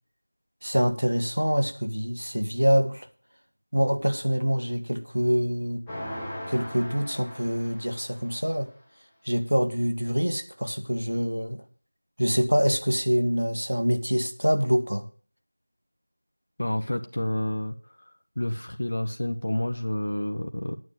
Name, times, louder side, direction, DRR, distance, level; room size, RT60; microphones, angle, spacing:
voice 1, 0.6-3.1 3.7-5.8 6.5-8.7 9.2-11.6 12.2-15.0, equal, 75° right, 7 dB, 1.9 m, -25 dB
sound 1, 5.9-8.6, equal, 5° left, 1.5 m, -39 dB
voice 2, 16.6-17.8 18.4-20.8, left 1 dB, 45° left, 6 dB, 1.0 m, -29 dB
9.4 x 7.2 x 7.6 m, 0.41 s
figure-of-eight pair, 175°, 0 cm